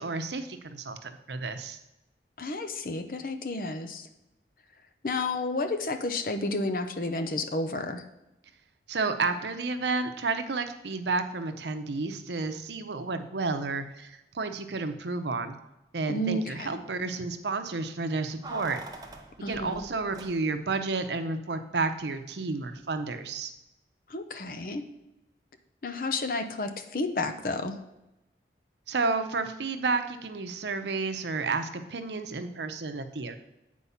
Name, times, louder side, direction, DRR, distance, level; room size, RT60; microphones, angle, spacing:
voice 1, 0.0-1.8 8.9-15.6 15.9-18.8 19.5-23.5 28.9-33.4, right 3 dB, 75° right, 8 dB, 0.7 m, -31 dB
voice 2, 2.4-4.1 5.0-8.0 16.1-16.8 19.4-19.9 24.1-24.9 25.8-27.8, left 2 dB, 50° left, 6 dB, 0.7 m, -31 dB
Keys jangling, 18.4-20.8 21.0-21.1, right 2 dB, 20° right, 0.7 m, -44 dB
8.4 x 4.6 x 5.7 m, 0.94 s
head